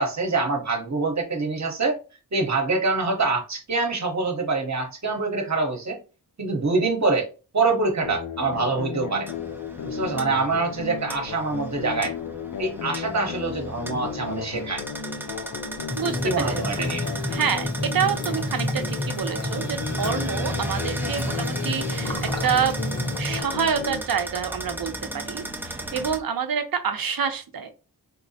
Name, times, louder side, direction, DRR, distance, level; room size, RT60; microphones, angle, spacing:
voice 1, 0.0-2.0 2.3-6.0 6.4-7.3 7.5-9.3 9.8-12.1 12.6-14.8 16.2-17.0, right 3 dB, 40° right, 1.0 m, -25 dB
sound 1, 8.0-24.0, left 7 dB, 55° left, 0.5 m, -34 dB
sound 2, 9.3-26.2, right 1 dB, 5° right, 0.5 m, -36 dB
sound 3, 15.9-23.4, equal, 10° left, 0.8 m, -30 dB
voice 2, 16.0-16.9 17.3-22.2 22.4-22.8 23.2-27.7, right 7 dB, 60° right, 0.6 m, -27 dB
4.3 x 2.0 x 2.7 m
wide cardioid pair, 105°, 41 cm